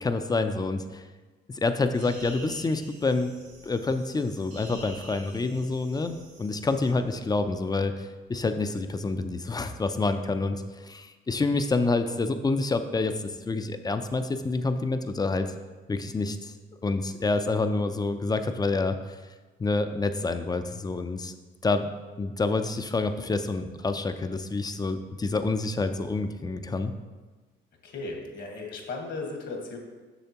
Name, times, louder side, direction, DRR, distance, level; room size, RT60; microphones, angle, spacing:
voice 1, 0.0-1.0 1.5-3.3 3.6-15.5 15.9-16.5 16.8-19.0 19.6-21.3 21.6-21.9 22.2-26.9, left 3 dB, 20° left, 9 dB, 0.4 m, -28 dB
sound 1, 1.9-6.9, right 2 dB, 85° right, 1.9 m, -48 dB
voice 2, 27.8-29.8, left 3 dB, 65° left, 2 dB, 1.4 m, -36 dB
6.9 x 6.3 x 2.9 m, 1.3 s
cardioid pair, 90°, 20 cm